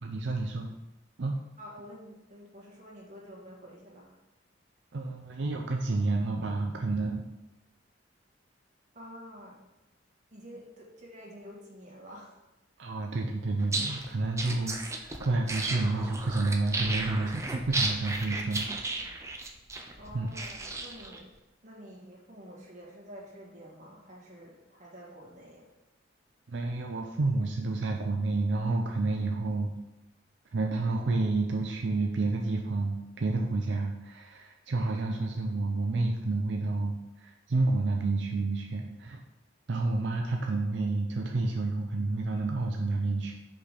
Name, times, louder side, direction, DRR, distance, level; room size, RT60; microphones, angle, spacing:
voice 1, 0.0-0.7 1.2-1.3 4.9-7.2 12.8-18.7 20.1-20.3 26.5-29.7 30.5-39.2 39.7-43.4, right 3 dB, 70° right, 2 dB, 0.5 m, -30 dB
voice 2, 1.6-4.2 8.9-9.6 10.3-12.3 20.0-21.3 21.6-25.7, equal, 40° right, -4 dB, 1.8 m, -48 dB
sound 1, 13.6-21.2, right 2 dB, 15° right, 0.5 m, -34 dB
5.5 x 5.0 x 4.1 m, 1.0 s
head